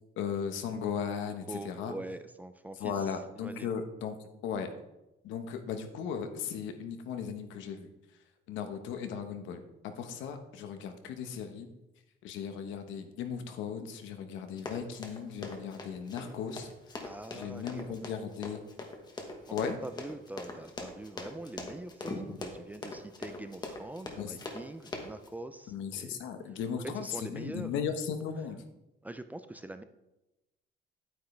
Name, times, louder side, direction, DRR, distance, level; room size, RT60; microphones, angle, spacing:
voice 1, 0.2-1.9 2.8-4.1 4.4-4.7 5.2-7.9 8.5-11.7 12.2-16.7 17.3-18.6 19.5-19.8 24.1-24.3 25.7-28.6, left 7 dB, 85° left, 7 dB, 1.2 m, -37 dB
voice 2, 1.5-3.7 17.0-17.9 19.5-19.6 19.8-26.2 27.0-27.7 29.0-29.8, right 1 dB, 10° right, 9 dB, 0.3 m, -44 dB
Run, 14.6-25.3, left 2 dB, 20° left, 1.2 m, -41 dB
9.5 x 9.2 x 3.3 m, 0.94 s
cardioid pair, 165°, 19 cm